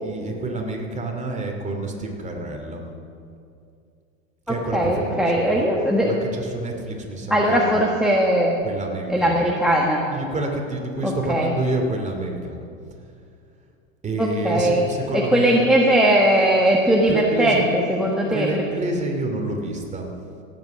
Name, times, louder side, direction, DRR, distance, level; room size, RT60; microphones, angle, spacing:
voice 1, 0.0-2.8 4.5-5.6 6.0-7.8 8.6-9.5 10.1-12.6 14.0-15.6 17.1-17.6 18.3-20.1, right 2 dB, 15° right, 2 dB, 2.6 m, -28 dB
voice 2, 4.5-6.1 7.3-8.6 9.1-10.0 11.0-11.5 14.2-14.8 15.1-18.6, right 1 dB, ahead, -2 dB, 1.4 m, -19 dB
17.5 x 8.4 x 6.3 m, 2.5 s
hypercardioid pair, 100°, 40 cm